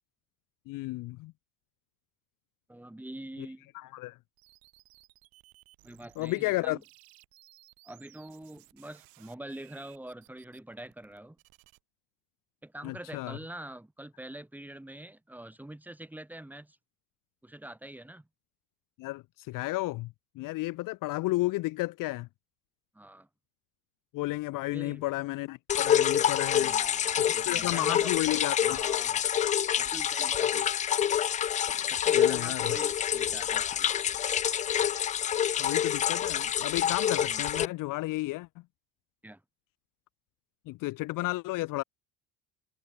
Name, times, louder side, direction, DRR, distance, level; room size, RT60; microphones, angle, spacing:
voice 1, 0.7-1.3 3.7-4.2 6.2-6.8 12.8-13.4 19.0-22.3 24.1-26.7 27.4-28.8 32.1-32.7 35.6-38.5 40.7-41.8, left 20 dB, 60° left, 1.2 m, -32 dB
voice 2, 2.7-3.7 5.8-6.8 7.8-11.4 12.6-16.8 17.4-18.3 22.9-23.3 24.7-25.0 26.5-28.1 28.6-29.3 29.8-30.7 31.9-33.9 37.1-37.4 39.2-39.4, right 1 dB, 5° right, 6.7 m, -45 dB
sound 1, 4.4-6.5 6.8-11.8, right 22 dB, 70° right, 7.2 m, -60 dB
sound 2, 25.7-37.7, left 9 dB, 20° left, 0.3 m, -27 dB
cardioid pair, 130°, 38 cm